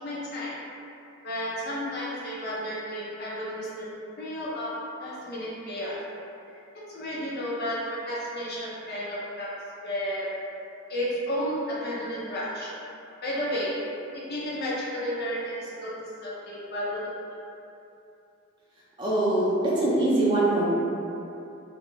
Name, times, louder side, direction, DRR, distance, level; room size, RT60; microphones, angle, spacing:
voice 1, 0.0-0.5 1.2-3.9 4.2-4.7 5.0-6.0 6.9-9.5 9.8-10.3 10.9-12.7 13.2-13.7 14.1-17.0, equal, 50° left, -7 dB, 0.6 m, -32 dB
voice 2, 19.0-20.7, right 2 dB, 20° right, -7 dB, 0.5 m, -23 dB
2.4 x 2.0 x 3.0 m, 2.7 s
head